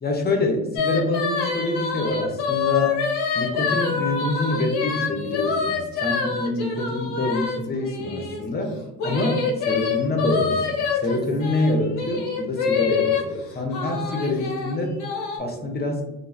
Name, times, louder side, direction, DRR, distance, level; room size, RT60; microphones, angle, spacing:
voice 1, 0.0-3.0 3.3-8.7 9.0-14.9 15.4-16.0, left 2 dB, 25° left, 2 dB, 0.8 m, -26 dB
sound 1, 0.8-8.4 9.0-13.2 13.7-15.4, left 5 dB, 80° left, 0.8 m, -26 dB
3.0 x 2.3 x 2.4 m, 0.99 s
hypercardioid pair, 55°, 40 cm